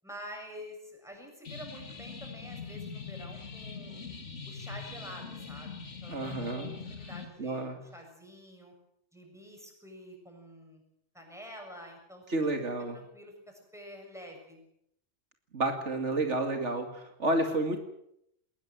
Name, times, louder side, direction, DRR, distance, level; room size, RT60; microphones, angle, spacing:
voice 1, 0.0-4.1 4.5-8.7 9.1-10.8 11.1-12.2 12.9-14.6, equal, ahead, 1 dB, 7.0 m, -48 dB
sound 1, 1.4-7.2, left 5 dB, 85° left, 2.8 m, -42 dB
voice 2, 6.1-6.7 7.4-7.8 12.3-13.0 15.5-17.8, right 2 dB, 80° right, 5 dB, 2.7 m, -30 dB
21.0 x 19.0 x 7.6 m, 0.76 s
omnidirectional pair, 1.2 m